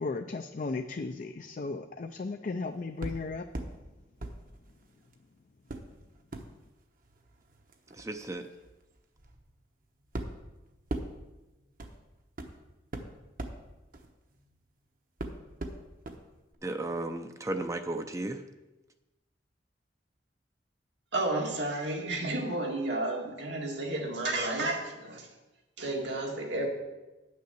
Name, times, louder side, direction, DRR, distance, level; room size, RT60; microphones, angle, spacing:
voice 1, 0.0-3.4, left 3 dB, 45° left, 6 dB, 0.4 m, -35 dB
sound 1, 3.0-3.8 4.2-5.2 5.7-14.8 15.2-16.2 16.5-16.6, right 1 dB, 50° right, 1.0 m, -41 dB
voice 2, 8.0-8.4 16.6-18.4, right 2 dB, 15° right, 7 dB, 0.5 m, -34 dB
voice 3, 21.1-25.3 25.8-26.7, right 2 dB, 85° right, 0 dB, 2.0 m, -32 dB
9.3 x 6.5 x 7.0 m, 1.1 s
head